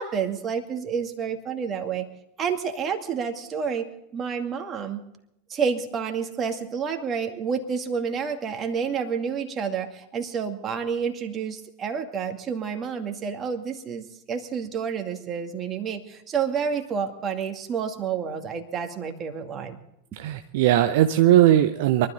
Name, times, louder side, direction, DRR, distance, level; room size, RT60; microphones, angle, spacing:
voice 1, 0.0-2.1 2.4-5.0 5.5-19.8, right 6 dB, 30° right, 5 dB, 2.3 m, -29 dB
voice 2, 20.1-22.1, right 12 dB, 55° right, 7 dB, 0.8 m, -19 dB
23.5 x 13.0 x 4.0 m, 0.81 s
figure-of-eight pair, 85°, 0 cm